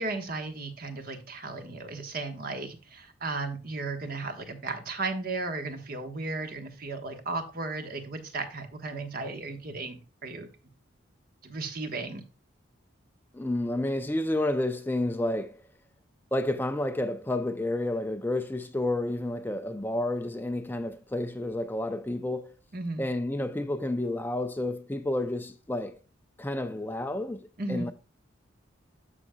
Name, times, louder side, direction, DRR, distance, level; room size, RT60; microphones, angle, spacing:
voice 1, 0.0-10.5 11.4-12.2 22.7-23.0 27.6-27.9, right 3 dB, 45° right, 1.2 m, -35 dB
voice 2, 13.3-15.6 16.3-22.5 23.0-26.0 26.4-27.9, left 1 dB, 10° left, 0.4 m, -30 dB
13.0 x 5.1 x 2.2 m
head